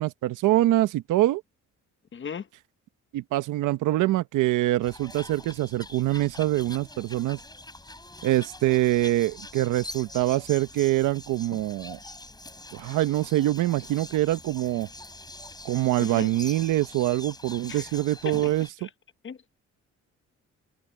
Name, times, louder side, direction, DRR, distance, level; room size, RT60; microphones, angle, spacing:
voice 1, 0.0-1.4 3.1-7.4 8.2-12.0 12.7-14.9 15.6-18.7, right 15 dB, 90° right, 1.0 m, -24 dB
voice 2, 2.1-2.5 16.0-16.3 17.7-17.9 18.2-18.5 18.8-18.9 19.2-19.4, left 7 dB, 40° left, 1.1 m, -36 dB
sound 1, 4.8-18.7, left 2 dB, 15° left, 5.2 m, -44 dB
cardioid pair, 90°, 30 cm